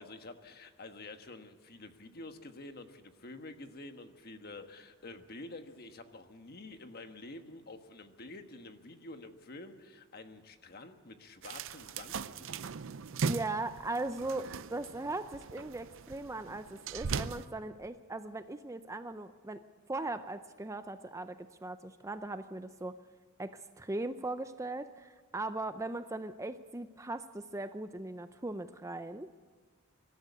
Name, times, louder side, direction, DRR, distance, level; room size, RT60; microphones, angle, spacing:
voice 1, 0.0-12.7, left 2 dB, 45° left, 7 dB, 1.4 m, -49 dB
sound 1, 11.4-17.5, right 5 dB, 65° right, 0.6 m, -39 dB
voice 2, 13.2-19.6 19.9-21.4 21.6-22.9 23.4-29.3, right 2 dB, 15° right, 10 dB, 0.5 m, -39 dB
24.5 x 13.0 x 8.3 m, 1.5 s
head